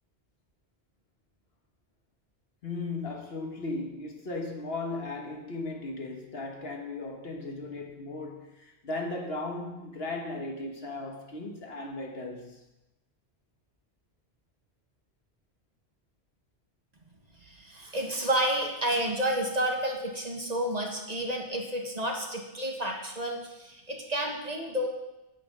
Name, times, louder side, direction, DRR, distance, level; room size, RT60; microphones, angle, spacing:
voice 1, 2.6-12.6, left 2 dB, 70° left, 1.6 m, -36 dB
voice 2, 17.4-24.9, right 1 dB, 40° right, 1.5 m, -30 dB
8.8 x 8.2 x 5.4 m
omnidirectional pair, 1.1 m